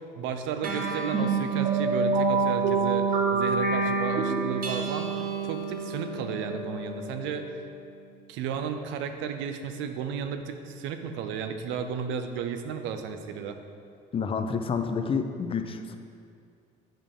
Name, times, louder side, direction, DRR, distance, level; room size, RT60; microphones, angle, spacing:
voice 1, 0.2-7.5 8.3-13.6, right 7 dB, 75° right, 7 dB, 0.6 m, -33 dB
sound 1, 0.6-7.5, right 4 dB, 45° right, 0.8 m, -27 dB
voice 2, 14.1-16.0, left 5 dB, 30° left, 7 dB, 0.5 m, -29 dB
7.4 x 5.0 x 3.7 m, 2.3 s
cardioid pair, 105°, 20 cm